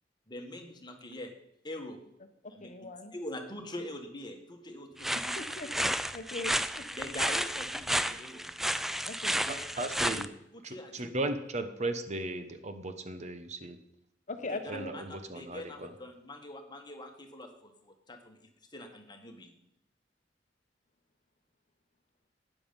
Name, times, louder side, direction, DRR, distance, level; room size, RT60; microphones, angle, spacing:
voice 1, 0.3-1.3 1.6-2.0 2.5-5.3 6.9-8.4 9.4-9.9 10.1-10.2 10.5-11.1 14.5-18.4 18.7-19.5, left 1 dB, 25° left, 4 dB, 1.6 m, -44 dB
voice 2, 2.6-3.1 5.1-5.7 6.1-6.9 9.0-9.4 14.3-14.9, left 3 dB, 40° left, 7 dB, 1.0 m, -40 dB
sound 1, 5.0-10.3, equal, ahead, 0.4 m, -32 dB
voice 3, 9.5-10.3 10.6-13.8 14.7-15.9, right 2 dB, 40° right, 8 dB, 1.0 m, -36 dB
12.5 x 9.5 x 5.3 m, 0.81 s
head